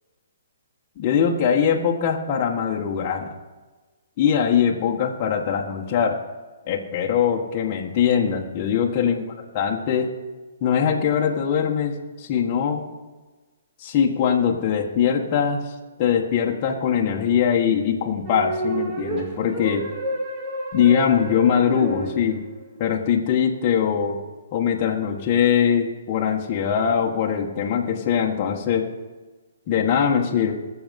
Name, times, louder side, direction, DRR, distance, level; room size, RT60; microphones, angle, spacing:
voice 1, 1.0-3.3 4.2-6.2 6.6-9.2 9.5-10.1 10.6-12.8 13.8-15.6 16.0-19.9 20.7-22.4 22.8-24.2 24.5-28.9 29.7-30.5, left 8 dB, 30° left, -1 dB, 1.7 m, -22 dB
sound 1, 18.3-22.7, right 1 dB, 25° right, 3.0 m, -30 dB
20.5 x 7.2 x 5.5 m, 1.3 s
hypercardioid pair, 155°, 0 cm